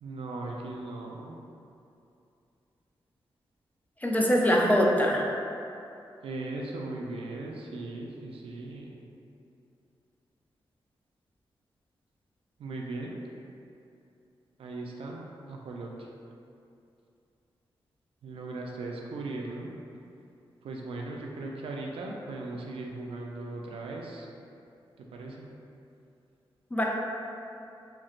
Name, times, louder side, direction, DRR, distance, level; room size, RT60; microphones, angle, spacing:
voice 1, 0.0-1.4 6.2-8.9 12.6-13.2 14.6-15.9 18.2-19.7 20.6-24.3 25.0-25.5, right 2 dB, 85° right, -1 dB, 0.4 m, -38 dB
voice 2, 4.0-5.2 26.7-26.8, equal, 15° left, -2 dB, 0.4 m, -23 dB
3.1 x 2.8 x 2.4 m, 2.7 s
cardioid pair, 75°, 9 cm